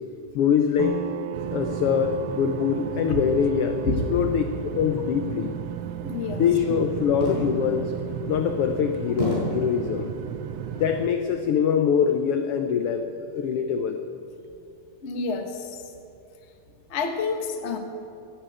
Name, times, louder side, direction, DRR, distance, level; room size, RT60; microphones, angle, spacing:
voice 1, 0.3-1.0 1.5-5.5 6.3-7.9 8.3-10.1 10.7-14.0, left 7 dB, 80° left, 6 dB, 1.3 m, -24 dB
sound 1, 0.8-14.1, right 10 dB, 70° right, 1.5 m, -38 dB
sound 2, 1.3-11.1, right 10 dB, 90° right, 1.3 m, -36 dB
voice 2, 6.0-6.4 15.0-15.9 16.9-17.8, left 4 dB, 60° left, 5 dB, 0.7 m, -28 dB
sound 3, 7.2-7.8 8.3-8.4 9.2-9.7 10.5-10.9, equal, 20° right, 5.2 m, -30 dB
15.5 x 10.0 x 9.1 m, 2.7 s
omnidirectional pair, 3.5 m